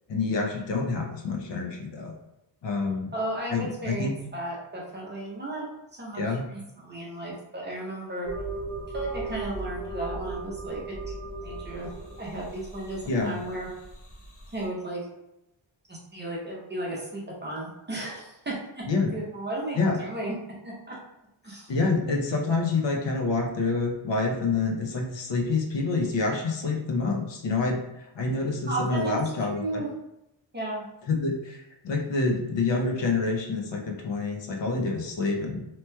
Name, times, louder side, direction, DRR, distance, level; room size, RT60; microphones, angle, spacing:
voice 1, 0.1-2.1 2.6-3.1 3.5-4.1 6.1-6.5 13.1-13.3 18.9-19.1 19.8-20.0 21.7-29.8 31.1-35.7, left 3 dB, 65° left, 0 dB, 0.7 m, -27 dB
voice 2, 3.1-5.7 5.9-8.3 8.9-10.8 11.4-11.9 12.2-13.7 14.5-15.0 15.9-20.3 20.6-20.9 21.4-21.7 28.7-29.2 29.6-29.9 30.5-30.8, right 1 dB, 20° right, -5 dB, 0.7 m, -34 dB
sound 1, 8.2-14.7, right 3 dB, 45° left, 1.0 m, -37 dB
2.9 x 2.9 x 2.2 m, 0.87 s
wide cardioid pair, 135°, 48 cm